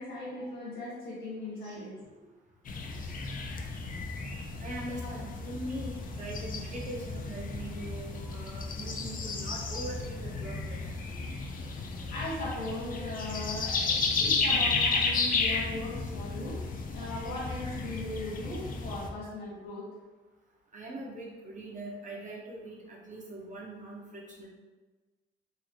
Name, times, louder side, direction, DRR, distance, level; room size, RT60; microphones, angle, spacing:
voice 1, 0.0-2.0 3.4-3.6 5.0-5.1 12.1-16.6 16.9-19.9, left 1 dB, 70° left, -8 dB, 1.4 m, -38 dB
sound 1, 2.7-19.1, left 4 dB, 45° left, 0.5 m, -33 dB
voice 2, 4.6-10.8 20.7-24.5, right 1 dB, 40° right, -3 dB, 1.1 m, -41 dB
3.9 x 2.8 x 2.9 m, 1.3 s
cardioid pair, 90°, 20 cm